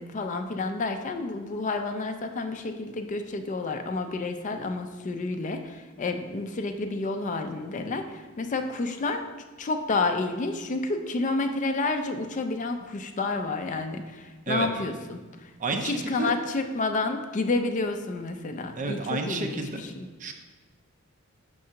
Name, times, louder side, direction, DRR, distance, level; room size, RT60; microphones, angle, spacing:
voice 1, 0.0-9.2 9.6-20.1, left 3 dB, 35° left, 7 dB, 0.4 m, -30 dB
voice 2, 15.6-16.3 18.8-19.8 20.2-20.3, right 3 dB, 35° right, 4 dB, 0.6 m, -30 dB
5.4 x 3.7 x 5.7 m, 1.3 s
head